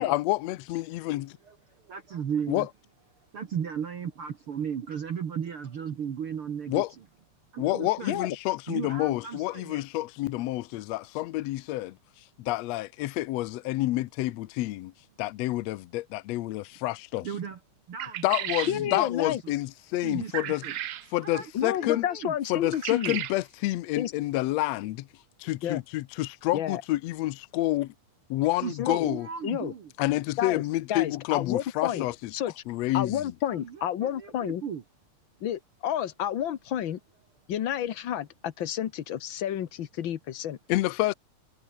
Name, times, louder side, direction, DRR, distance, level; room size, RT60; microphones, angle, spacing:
voice 1, 0.0-1.4 2.5-2.7 6.7-6.9 7.6-12.0 12.4-14.9 15.2-17.3 18.2-20.6 21.1-22.0 22.5-25.1 25.4-27.9 28.3-29.3 30.0-32.1 32.7-33.3 40.7-41.1, left 17 dB, 75° left, 1.7 m, -28 dB
voice 2, 1.5-2.7 3.3-6.8 7.5-8.2 8.7-9.8 17.2-17.6 17.9-19.5 20.0-20.8 21.2-22.4 28.6-29.9 33.5-34.8, right 7 dB, 50° right, 2.3 m, -36 dB
sound 1, 18.0-18.8 20.3-21.1 22.7-23.4, right 12 dB, 75° right, 1.1 m, -34 dB
voice 3, 18.7-19.4 21.5-23.2 24.0-24.1 25.6-25.8 26.5-26.8 28.8-29.1 29.4-29.7 30.4-30.6 30.9-32.0 32.3-32.6 32.9-34.6 35.4-37.0 37.5-40.6, left 10 dB, 60° left, 1.3 m, -30 dB
omnidirectional pair, 3.5 m